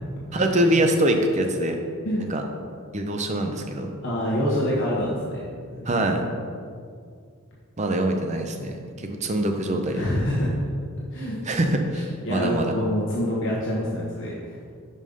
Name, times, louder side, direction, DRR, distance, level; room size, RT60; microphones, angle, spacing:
voice 1, 0.3-1.8 2.3-2.4 2.9-3.9 5.9-6.2 7.8-10.0 11.5-12.7, right 1 dB, 30° right, 4 dB, 0.6 m, -24 dB
voice 2, 2.0-2.4 4.0-5.5 5.8-6.0 9.9-10.5 11.1-11.4 12.2-14.6, equal, 55° left, -6 dB, 1.1 m, -26 dB
5.4 x 5.0 x 5.4 m, 2.2 s
head